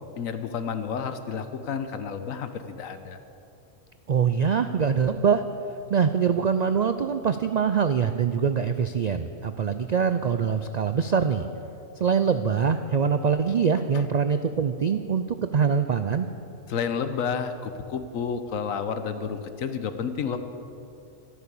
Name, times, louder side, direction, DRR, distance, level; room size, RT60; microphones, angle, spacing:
voice 1, 0.2-3.2 13.9-14.0 16.7-20.4, left 6 dB, 85° left, 9 dB, 1.3 m, -30 dB
voice 2, 4.1-5.4 5.9-11.5 12.0-15.3 15.5-16.3, right 6 dB, 85° right, 9 dB, 0.3 m, -23 dB
13.0 x 12.5 x 6.9 m, 2.7 s
omnidirectional pair, 1.4 m